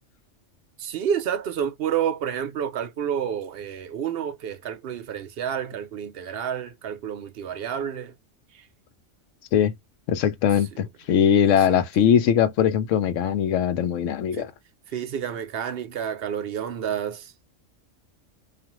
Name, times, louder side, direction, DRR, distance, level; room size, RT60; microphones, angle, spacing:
voice 1, 0.8-8.1 8.5-8.7 11.4-11.8 14.3-14.5 14.9-17.3, right 8 dB, 65° right, 0.7 m, -29 dB
voice 2, 10.1-14.5, left 8 dB, 90° left, 1.0 m, -21 dB
2.4 x 2.4 x 2.8 m
omnidirectional pair, 1.3 m